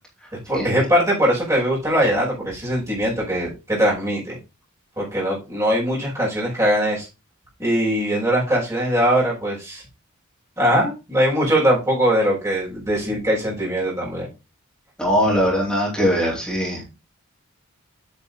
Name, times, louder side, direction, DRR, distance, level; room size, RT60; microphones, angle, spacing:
voice 1, 0.5-4.4 5.0-7.1 7.6-9.8 10.6-14.3, equal, 15° right, -6 dB, 5.7 m, -21 dB
voice 2, 15.0-16.8, equal, 5° left, -5 dB, 4.4 m, -20 dB
8.7 x 6.9 x 4.1 m, 0.28 s
head